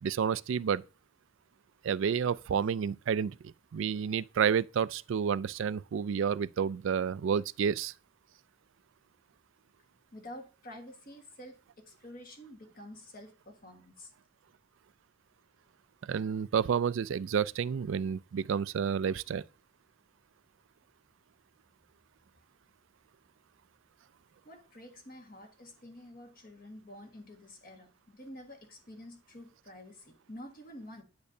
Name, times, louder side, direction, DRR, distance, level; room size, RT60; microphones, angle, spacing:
voice 1, 0.0-0.8 1.8-7.9 16.0-19.4, right 7 dB, 65° right, 0.3 m, -30 dB
voice 2, 10.1-14.1 24.4-31.0, left 1 dB, 40° left, 1.5 m, -49 dB
9.5 x 8.6 x 2.7 m
head